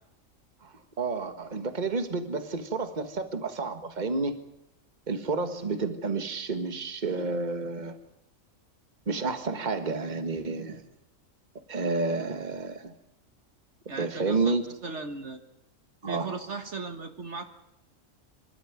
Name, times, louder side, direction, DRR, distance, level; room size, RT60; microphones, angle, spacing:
voice 1, 0.6-4.4 5.1-8.0 9.1-10.8 11.7-12.9 14.0-14.6 16.0-16.4, right 3 dB, 35° right, 8 dB, 1.7 m, -30 dB
voice 2, 13.9-14.5 14.8-15.4 16.1-17.4, right 3 dB, 60° right, 7 dB, 1.7 m, -37 dB
25.5 x 12.5 x 9.6 m, 0.86 s
omnidirectional pair, 1.4 m